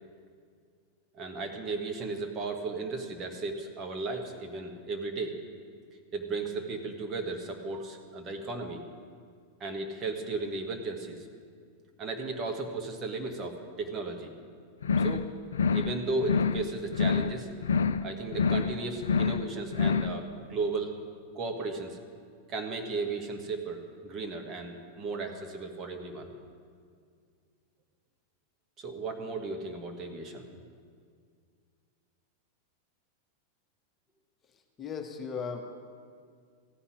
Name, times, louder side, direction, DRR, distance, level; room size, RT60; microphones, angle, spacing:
voice 1, 1.1-5.4 6.1-8.8 9.6-11.3 12.0-14.3 15.0-15.3 15.7-17.5 18.0-20.9 21.3-22.0 22.5-26.3 28.8-30.5, right 3 dB, 30° right, 3 dB, 1.5 m, -35 dB
sound 1, 14.8-15.3 15.5-15.9 16.2-16.7 16.9-17.4 17.6-18.1 18.3-18.7 19.0-19.5 19.7-20.1, left 5 dB, 70° left, 0.4 m, -26 dB
voice 2, 34.8-35.6, left 6 dB, 25° left, 4 dB, 1.0 m, -36 dB
15.0 x 5.7 x 9.9 m, 2.1 s
figure-of-eight pair, 90°, 0 cm